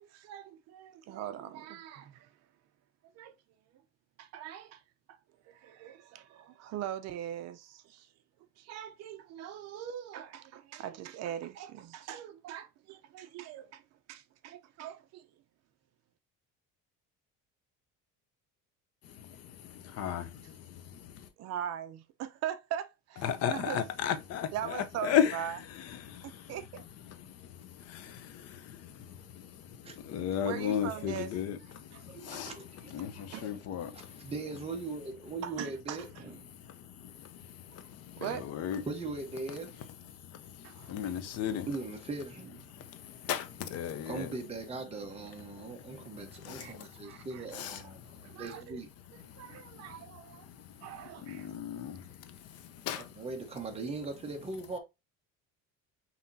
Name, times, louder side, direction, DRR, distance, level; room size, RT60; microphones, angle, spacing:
voice 1, 0.0-2.3 3.1-3.3 4.2-4.8 5.1-5.2 5.5-8.1 8.6-13.8 14.1-15.3 21.4-23.2 23.5-23.8 24.5-25.5 26.2-26.8 30.4-31.3 33.3-33.4 35.4-36.0 38.2-38.4 40.6-40.9 46.6-46.7 47.0-47.4 48.2-48.8 49.4-50.5 50.8-51.5, right 10 dB, 55° right, 0.7 m, -41 dB
voice 2, 19.0-21.3 23.2-34.3 36.3-38.9 39.6-41.7 42.7-44.3 45.3-48.4 49.2-53.2, left 9 dB, 55° left, 0.8 m, -37 dB
voice 3, 32.0-33.0 33.3-33.6 33.9-36.5 37.1-37.2 38.9-39.7 41.7-42.9 44.1-48.9 53.0-54.8, right 3 dB, 20° right, 1.0 m, -40 dB
5.7 x 2.9 x 2.6 m
cardioid pair, 165°, 31 cm